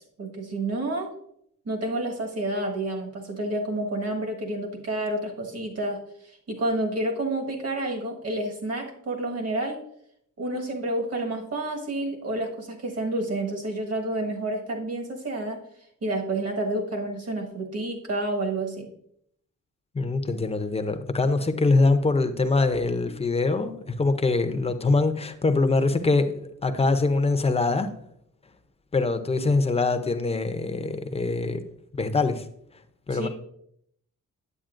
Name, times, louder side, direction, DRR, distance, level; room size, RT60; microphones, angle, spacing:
voice 1, 0.2-1.1 1.6-6.0 6.5-9.8 10.4-15.6 16.0-18.9 33.1-33.3, right 1 dB, 50° right, 1.5 m, -29 dB
voice 2, 19.9-27.9 28.9-31.6 32.0-32.4 33.1-33.3, left 3 dB, 20° left, 0.6 m, -23 dB
8.9 x 8.1 x 2.5 m
wide cardioid pair, 125°, 33 cm